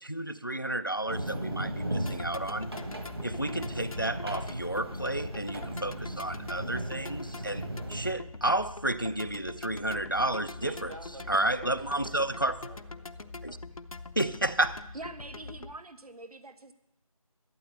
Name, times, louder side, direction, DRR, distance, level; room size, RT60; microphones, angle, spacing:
voice 1, 0.0-2.7 3.2-7.6 7.9-10.7 11.3-12.7 13.4-13.6 14.2-14.9, right 1 dB, 35° left, 0.4 m, -31 dB
sound 1, 1.1-8.2, right 1 dB, 40° right, 1.5 m, -36 dB
sound 2, 2.1-15.8, left 3 dB, 70° left, 0.8 m, -44 dB
voice 2, 10.6-12.1 12.6-13.8, right 1 dB, 60° right, 2.5 m, -49 dB
voice 3, 14.9-16.7, right 2 dB, 90° right, 0.9 m, -44 dB
12.5 x 8.0 x 7.9 m
figure-of-eight pair, 180°, 19 cm